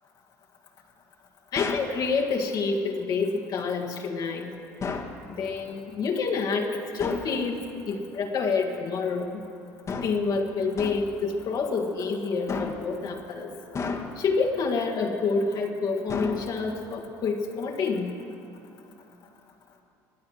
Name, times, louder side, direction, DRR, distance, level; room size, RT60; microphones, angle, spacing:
voice 1, 1.5-4.5 5.4-9.4 10.0-13.5 14.2-18.1, left 4 dB, 55° left, 1 dB, 1.6 m, -28 dB
sound 1, 1.6-2.0 4.8-5.2 7.0-7.4 9.9-10.3 10.8-11.2 12.5-13.0 13.8-14.3 16.1-16.8, left 4 dB, 40° left, 1.5 m, -32 dB
19.5 x 8.7 x 7.8 m, 2.7 s
supercardioid pair, 85°, 8 cm